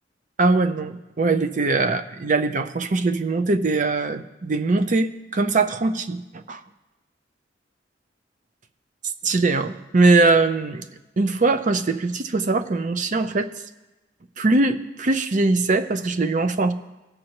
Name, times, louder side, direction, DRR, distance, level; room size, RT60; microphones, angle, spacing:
voice 1, 0.4-6.2 6.5-6.6 9.2-10.8 11.2-13.5 14.4-16.7, right 3 dB, 45° right, 9 dB, 0.6 m, -21 dB
19.0 x 6.4 x 3.0 m, 1.1 s
head